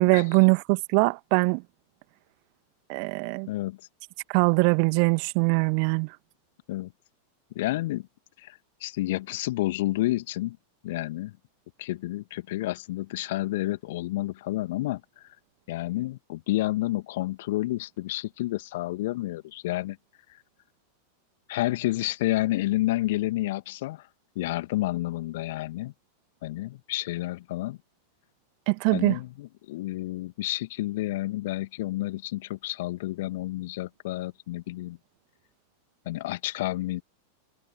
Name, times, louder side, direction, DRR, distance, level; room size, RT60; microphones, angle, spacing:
voice 1, 0.0-1.6 2.9-3.5 4.3-6.2 28.7-29.2, right 40 dB or more, 45° right, 1.9 m, -22 dB
voice 2, 3.5-3.8 6.7-6.9 7.5-8.1 8.4-10.6 10.8-11.4 11.8-15.3 15.7-20.0 20.3-20.4 21.5-24.1 24.4-25.9 26.4-27.8 28.9-35.0 36.1-37.0, left 17 dB, 55° left, 2.1 m, -30 dB
figure-of-eight pair, 90°, 0 cm